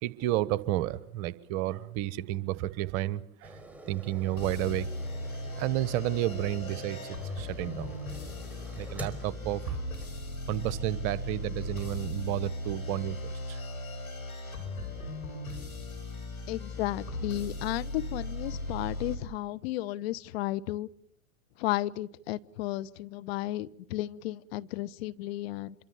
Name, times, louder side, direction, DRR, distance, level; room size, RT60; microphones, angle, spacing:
voice 1, 0.0-3.6 3.9-4.9 5.6-8.0 8.7-9.8 10.5-13.6, right 14 dB, 40° right, 17 dB, 1.3 m, -31 dB
sound 1, 3.4-10.4 11.0-11.1, right 1 dB, 5° right, 5.0 m, -47 dB
sound 2, 4.4-19.2, left 1 dB, 80° left, 7.4 m, -38 dB
voice 2, 16.5-20.9 21.6-25.7, left 15 dB, 45° left, 14 dB, 1.2 m, -33 dB
26.5 x 23.5 x 7.1 m, 0.69 s
figure-of-eight pair, 95°, 41 cm